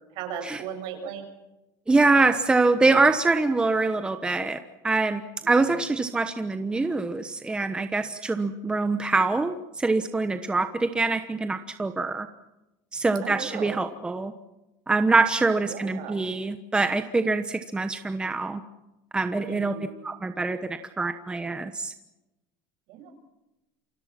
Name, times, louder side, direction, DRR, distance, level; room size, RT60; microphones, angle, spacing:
voice 1, 0.2-1.2 5.4-5.5 13.2-13.8 15.7-16.2 19.4-19.9 22.9-23.1, right 8 dB, 60° right, 6 dB, 7.0 m, -36 dB
voice 2, 1.9-4.6 4.8-5.2 5.5-12.3 12.9-14.3 14.9-18.6 19.1-19.7 20.0-21.9, right 3 dB, 10° right, 9 dB, 1.1 m, -24 dB
28.5 x 25.0 x 6.0 m, 0.96 s
cardioid pair, 145°, 9 cm